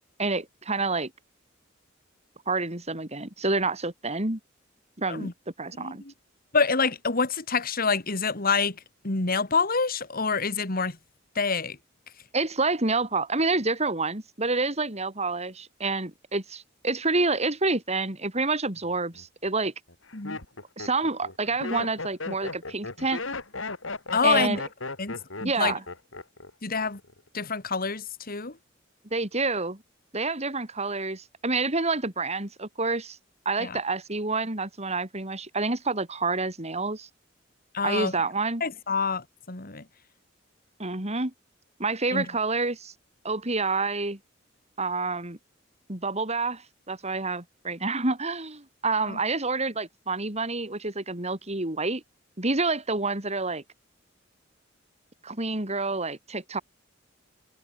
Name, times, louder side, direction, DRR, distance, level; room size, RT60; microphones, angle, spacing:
voice 1, 0.2-1.1 2.5-4.4 5.0-5.3 5.6-6.0 12.3-19.7 20.8-23.2 24.2-24.6 25.4-25.8 29.1-29.8 30.1-33.2 33.4-37.1 37.8-38.6 40.8-41.3 41.8-42.9 43.2-44.2 44.8-45.4 45.9-52.0 52.4-53.6 55.2-56.6, right 3 dB, 35° right, 4.2 m, -28 dB
voice 2, 5.8-6.1 6.5-8.8 9.0-11.0 11.4-11.8 20.1-20.4 24.1-24.6 25.0-25.7 26.6-27.0 27.3-28.6 33.6-33.8 37.7-38.1 38.6-39.8 42.1-42.3 49.0-49.2, left 4 dB, 50° left, 2.3 m, -27 dB
Laughter, 18.8-19.2 19.9-26.5 26.8-27.3, left 3 dB, 85° left, 4.6 m, -36 dB
head